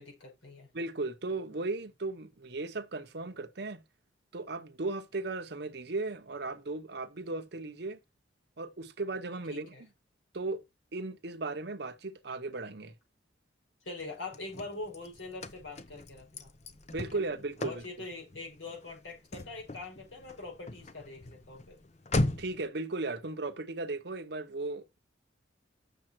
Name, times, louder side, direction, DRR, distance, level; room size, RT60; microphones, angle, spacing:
voice 1, 0.0-0.7 9.5-9.8 13.8-16.5 17.6-21.8, left 3 dB, 75° left, 5.9 m, -43 dB
voice 2, 0.7-3.8 4.3-8.0 8.6-9.7 10.3-10.6 10.9-12.9 16.9-17.8 22.4-25.0, right 3 dB, 55° right, 0.9 m, -36 dB
Car / Slam, 14.0-22.7, left 2 dB, 35° left, 0.8 m, -38 dB
7.6 x 6.9 x 4.5 m
head